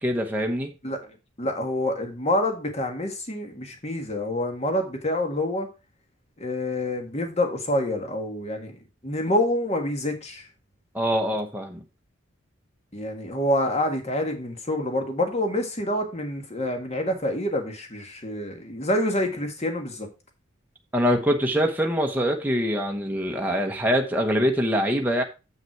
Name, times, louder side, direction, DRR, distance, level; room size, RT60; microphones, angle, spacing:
voice 1, 0.0-0.7 10.9-11.8 20.9-25.2, equal, 10° right, 0.9 m, -24 dB
voice 2, 1.4-5.7 6.4-8.7 9.0-10.5 12.9-20.1, left 1 dB, 30° left, 1.6 m, -27 dB
7.7 x 5.7 x 4.5 m
head